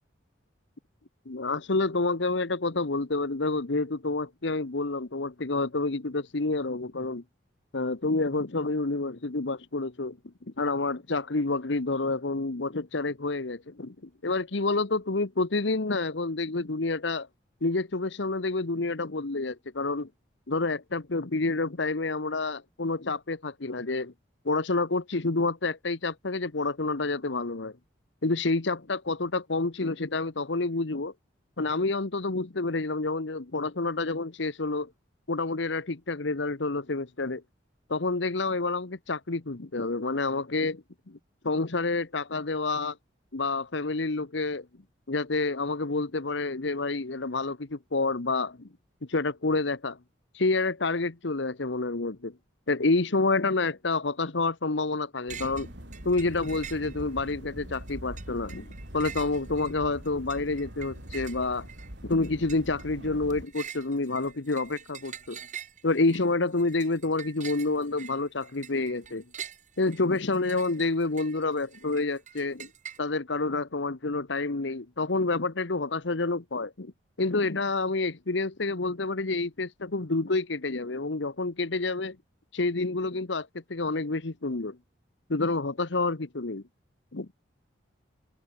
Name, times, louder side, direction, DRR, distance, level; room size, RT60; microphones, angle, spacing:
voice 1, 1.3-7.2 7.7-10.2 10.6-17.3 17.6-20.1 20.5-24.1 24.4-27.7 28.2-31.1 31.6-34.9 35.3-37.4 37.9-41.2 41.4-43.0 43.3-44.7 45.1-48.7 49.0-50.0 50.3-52.4 52.7-55.7 56.0-61.7 62.0-65.4 65.8-69.2 69.8-72.7 73.0-76.9 77.2-82.2 82.5-84.8 85.3-86.6 87.1-87.3, left 3 dB, 70° left, 1.1 m, -28 dB
sound 1, 55.3-55.7 55.9-57.3 57.7-73.0, right 9 dB, 40° right, 6.6 m, -45 dB
sound 2, 55.3-63.5, equal, 65° right, 5.6 m, -43 dB
open air
head